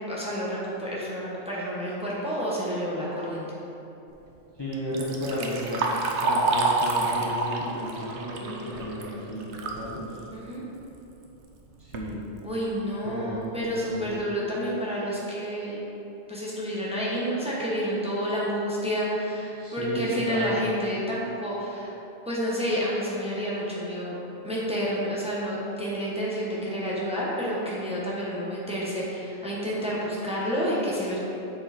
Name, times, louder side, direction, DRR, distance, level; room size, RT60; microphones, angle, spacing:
voice 1, 0.1-3.6 10.3-10.6 12.4-15.8 16.3-21.9 22.3-24.2 24.4-31.2, equal, 5° right, -7 dB, 1.1 m, -29 dB
voice 2, 4.6-5.8 6.2-10.2 11.8-12.3 13.0-14.0 19.5-20.6, equal, 25° left, -8 dB, 0.9 m, -33 dB
Liquid, 4.7-9.8 10.2-10.3 11.2-11.3 11.7-12.1 12.7-12.8 13.3-13.4 13.8-14.1, right 3 dB, 75° right, 1.0 m, -28 dB
7.7 x 4.8 x 4.3 m, 3.0 s
omnidirectional pair, 1.2 m